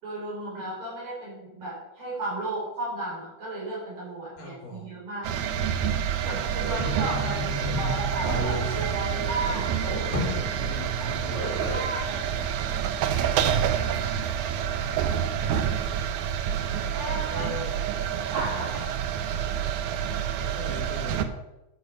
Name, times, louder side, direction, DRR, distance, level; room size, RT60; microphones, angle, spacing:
voice 1, 0.0-5.3 6.2-10.4 11.2-13.2 16.9-17.5 18.3-18.8, right 2 dB, 60° right, -6 dB, 4.8 m, -35 dB
voice 2, 4.4-4.9 6.2-6.4 10.7-11.4 13.3-14.0 17.3-17.8 18.7-18.9 20.4-21.3, left 1 dB, 85° left, -1 dB, 5.2 m, -40 dB
sound 1, 5.2-21.3, right 9 dB, 75° right, 2.1 m, -28 dB
sound 2, 6.8-11.8, equal, 25° left, 2.5 m, -33 dB
12.5 x 6.7 x 5.6 m, 0.97 s
omnidirectional pair, 3.6 m